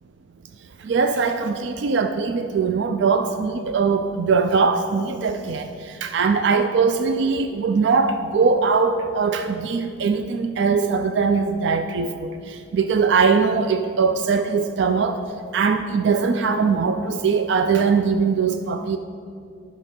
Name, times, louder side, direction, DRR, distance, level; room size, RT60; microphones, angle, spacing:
voice 1, 0.8-15.2 15.5-19.0, right 5 dB, 60° right, 8 dB, 0.3 m, -21 dB
9.9 x 6.2 x 5.2 m, 2.4 s
head